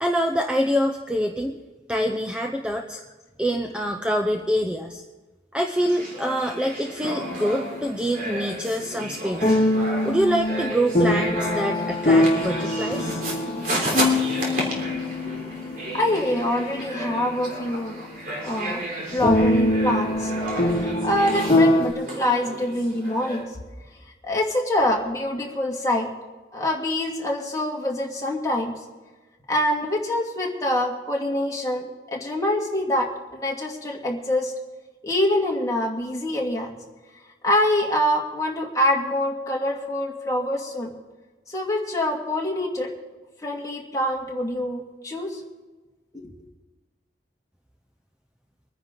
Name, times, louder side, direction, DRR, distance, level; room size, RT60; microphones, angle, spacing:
voice 1, 0.0-1.5 1.9-3.0 3.4-5.0 5.5-9.5 10.0-13.2, equal, 5° right, 3 dB, 0.6 m, -25 dB
sound 1, 5.8-23.4, right 1 dB, 50° right, 3.3 m, -33 dB
sound 2, 7.1-8.4 9.4-18.2 18.5-18.6 19.2-21.9, left 1 dB, 35° left, 1.9 m, -24 dB
voice 2, 15.9-18.0 18.4-18.8 19.1-20.3 20.7-23.5 24.2-26.1 26.5-28.7 29.5-34.5 35.0-36.7 37.4-40.9 41.5-42.9 43.4-45.4 46.1-46.3, left 1 dB, 20° left, -2 dB, 2.1 m, -25 dB
25.0 x 10.0 x 3.8 m, 1.2 s
head